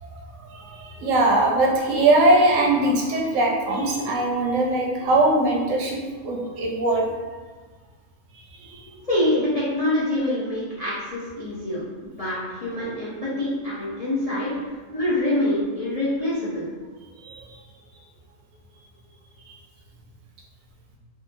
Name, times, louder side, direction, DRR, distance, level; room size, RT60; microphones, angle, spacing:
voice 1, 0.0-7.1 8.6-9.0 17.2-17.5 19.5-19.6, right 2 dB, 90° right, -1 dB, 1.0 m, -21 dB
voice 2, 9.1-14.5 14.9-16.7, left 1 dB, 45° left, -10 dB, 0.5 m, -25 dB
2.8 x 2.4 x 2.5 m, 1.3 s
omnidirectional pair, 1.3 m